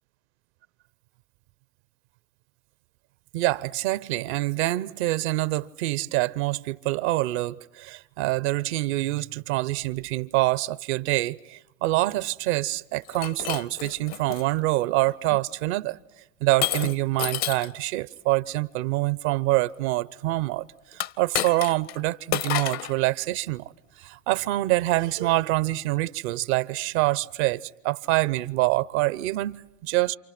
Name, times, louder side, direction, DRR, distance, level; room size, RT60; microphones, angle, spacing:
voice 1, 3.3-16.0 16.4-23.7 24.0-30.2, right 18 dB, 65° right, 0.8 m, -26 dB
Shatter, 13.1-14.4 15.1-15.4 16.6-17.8 20.9-22.0 22.3-23.0, left 12 dB, 45° left, 0.8 m, -30 dB
28.5 x 28.0 x 6.0 m
hypercardioid pair, 85°, 36 cm